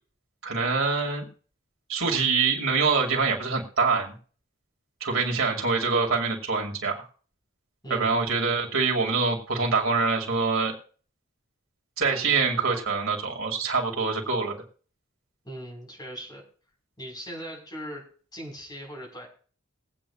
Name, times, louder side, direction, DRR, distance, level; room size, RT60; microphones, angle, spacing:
voice 1, 0.4-1.3 1.9-4.1 5.0-7.0 7.9-10.7 12.0-14.6, right 4 dB, 80° right, 1 dB, 2.3 m, -25 dB
voice 2, 7.8-8.3 15.4-16.4 17.0-18.0 18.3-19.3, equal, 20° left, -1 dB, 4.3 m, -39 dB
21.5 x 8.5 x 2.3 m, 0.42 s
head